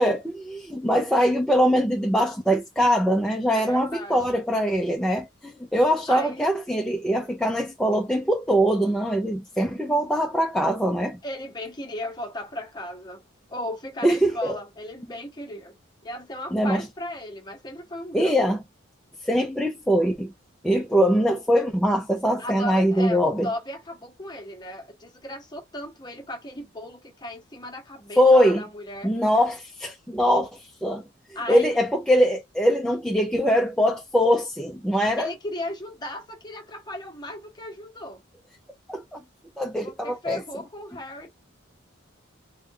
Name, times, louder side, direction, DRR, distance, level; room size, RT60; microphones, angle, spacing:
voice 1, 0.0-11.2 14.0-14.5 16.5-16.8 18.1-18.6 19.2-20.3 20.6-23.5 28.2-28.6 29.0-31.0 31.5-35.3 38.9-39.2 39.6-40.4, equal, 5° left, 0.5 m, -22 dB
voice 2, 3.5-4.4 6.1-6.5 11.2-13.2 13.5-15.7 16.0-18.5 22.4-29.1 31.3-31.8 35.2-38.2 39.8-41.3, left 1 dB, 20° left, 1.0 m, -36 dB
3.1 x 2.5 x 3.7 m
head